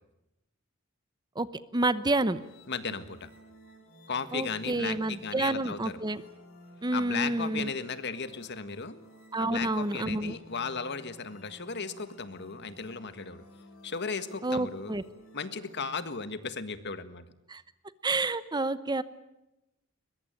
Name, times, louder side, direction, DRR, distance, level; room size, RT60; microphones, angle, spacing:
voice 1, 1.7-2.4 4.3-6.2 6.8-7.7 9.3-10.3 14.4-15.0 17.5-17.6 18.0-19.0, right 2 dB, 20° right, 14 dB, 0.9 m, -29 dB
sound 1, 2.3-16.1, left 1 dB, 80° left, 7.8 m, -54 dB
voice 2, 2.7-3.3 4.1-6.0 6.9-9.0 9.4-13.4 13.8-14.9 15.3-17.2, left 5 dB, 55° left, 11 dB, 1.7 m, -36 dB
22.0 x 22.0 x 9.0 m, 0.92 s
head